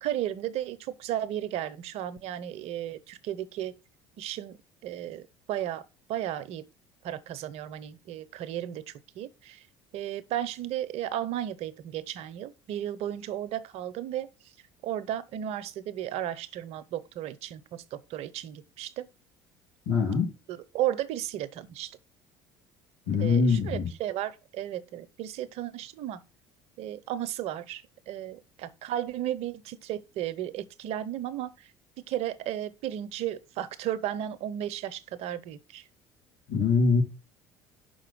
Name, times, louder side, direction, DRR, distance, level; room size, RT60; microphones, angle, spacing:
voice 1, 0.0-3.7 4.2-5.8 6.1-6.7 7.0-9.7 9.9-14.5 14.8-19.1 20.5-22.0 23.2-26.2 26.8-31.7 32.1-35.9, right 12 dB, 60° right, 0.7 m, -34 dB
voice 2, 19.9-20.3 23.1-23.9 36.5-37.0, left 5 dB, 75° left, 2.9 m, -23 dB
5.9 x 4.1 x 6.1 m
hypercardioid pair, 65°, 12 cm